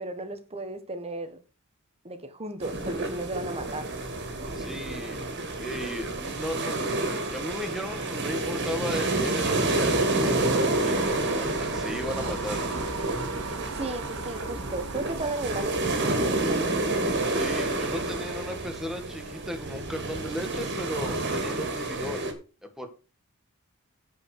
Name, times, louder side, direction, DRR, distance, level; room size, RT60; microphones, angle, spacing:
voice 1, 0.0-1.4 2.0-3.9 13.7-16.8, right 2 dB, 30° right, 1.5 m, -35 dB
sound 1, 2.6-22.3, right 2 dB, 55° right, 2.5 m, -29 dB
voice 2, 4.5-5.2 5.6-6.8 7.3-12.6 17.2-22.3 22.8-22.9, equal, ahead, 2.0 m, -36 dB
sound 2, 9.8-16.3, right 4 dB, 70° right, 1.5 m, -39 dB
11.0 x 5.3 x 6.7 m
head